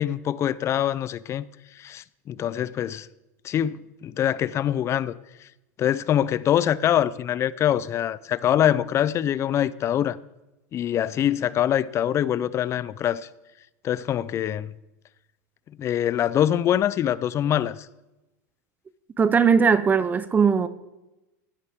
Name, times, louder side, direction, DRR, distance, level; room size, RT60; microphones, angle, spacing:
voice 1, 0.0-1.4 1.8-3.1 3.4-5.1 5.8-10.2 10.7-13.3 13.8-14.7 15.8-17.9, left 10 dB, 30° left, 0.5 m, -24 dB
voice 2, 19.2-20.7, right 6 dB, 20° right, 0.6 m, -19 dB
16.0 x 10.5 x 3.6 m
hypercardioid pair, 115°, 9 cm